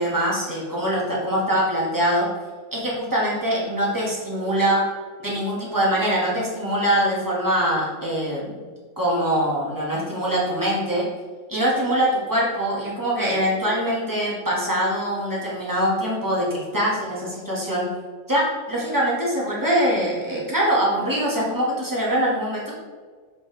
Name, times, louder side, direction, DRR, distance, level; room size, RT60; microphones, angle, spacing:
voice 1, 0.0-2.3 2.7-4.8 5.2-8.6 9.0-11.1 11.5-17.9 18.3-22.7, equal, 15° right, -6 dB, 2.0 m, -23 dB
6.7 x 5.7 x 3.4 m, 1.5 s
omnidirectional pair, 1.3 m